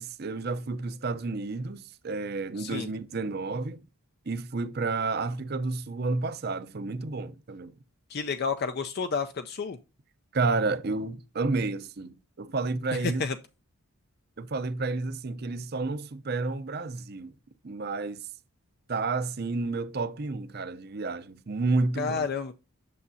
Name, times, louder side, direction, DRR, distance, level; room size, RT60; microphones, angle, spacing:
voice 1, 0.0-3.8 4.3-7.7 10.3-13.2 14.4-17.3 17.6-18.3 18.9-22.3, right 3 dB, 45° right, 0.6 m, -31 dB
voice 2, 2.6-2.9 8.1-9.8 13.0-13.4 22.0-22.5, left 5 dB, 50° left, 0.4 m, -30 dB
8.4 x 6.6 x 2.6 m
head